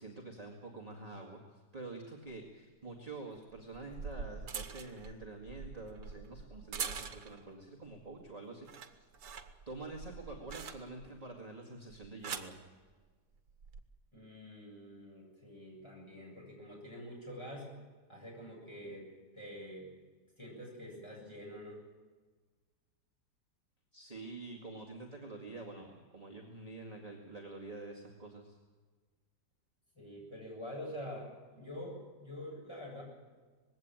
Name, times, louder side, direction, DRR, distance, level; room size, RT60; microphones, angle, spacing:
voice 1, 0.0-9.1 9.7-12.6 23.9-28.6, right 2 dB, 20° right, -1 dB, 2.2 m, -47 dB
sound 1, 2.3-2.4 3.5-7.5 7.9-8.3 8.6-11.2 11.9-12.6 13.5-13.8, right 6 dB, 75° right, 1.8 m, -44 dB
voice 2, 14.1-17.7 18.1-19.1 19.3-19.9 20.4-21.8 29.9-33.0, equal, 15° left, -3 dB, 7.9 m, -46 dB
20.5 x 16.5 x 9.1 m, 1.4 s
omnidirectional pair, 1.8 m